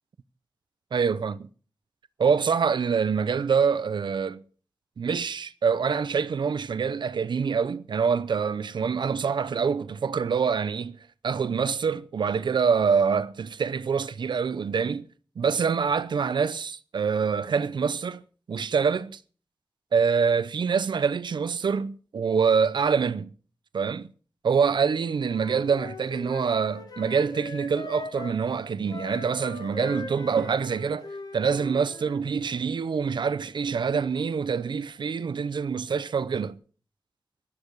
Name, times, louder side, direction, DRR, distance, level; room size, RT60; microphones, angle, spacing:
voice 1, 0.9-1.5 2.2-4.4 5.0-11.0 11.2-15.0 15.4-18.2 18.5-19.2 19.9-23.3 23.7-24.1 24.4-31.1 31.3-36.6, right 6 dB, 90° right, 0.8 m, -25 dB
Wind instrument woodwind instrument, 25.2-28.4 28.9-32.2, left 3 dB, 65° left, 3.9 m, -40 dB
17.5 x 12.0 x 4.8 m
wide cardioid pair, 95°, 8 cm